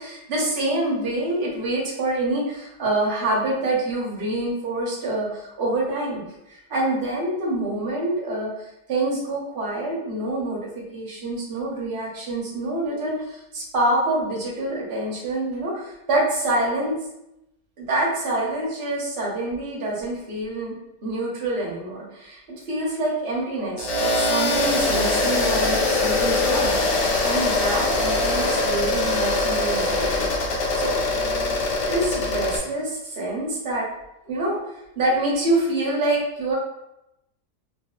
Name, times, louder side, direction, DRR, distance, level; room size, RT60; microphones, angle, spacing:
voice 1, 0.0-8.5 8.9-17.0 17.8-20.7 21.0-31.0 31.9-33.9 34.2-34.6 35.0-36.5, right 1 dB, 40° right, -5 dB, 0.8 m, -26 dB
sound 1, 23.8-32.6, left 2 dB, 65° left, 0.9 m, -22 dB
3.2 x 2.3 x 2.3 m, 0.86 s
omnidirectional pair, 1.7 m